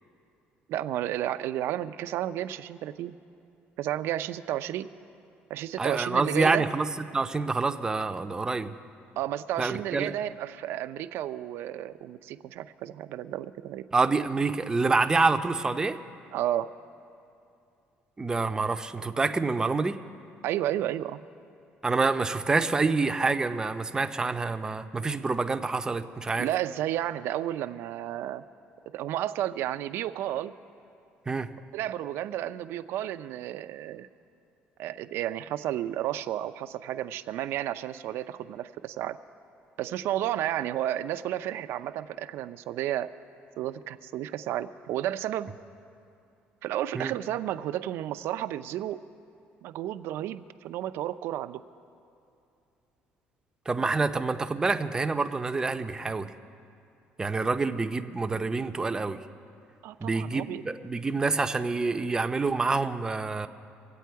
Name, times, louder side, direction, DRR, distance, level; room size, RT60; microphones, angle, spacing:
voice 1, 0.7-3.2 3.8-4.9 5.5-6.7 9.2-13.8 16.3-16.7 20.4-21.2 26.4-28.4 28.9-30.5 31.7-34.1 34.8-39.2 39.8-43.1 43.6-45.5 46.6-49.0 49.6-51.6 59.8-60.6, right 12 dB, 75° right, 12 dB, 0.5 m, -32 dB
voice 2, 5.8-6.9 7.1-8.7 9.6-10.1 13.9-15.9 18.2-20.0 21.8-26.5 31.3-31.5 46.9-47.1 53.7-56.3 57.2-59.2 60.0-63.5, right 3 dB, 15° right, 8 dB, 0.6 m, -27 dB
24.5 x 8.5 x 4.6 m, 2.6 s
cardioid pair, 120°, 4 cm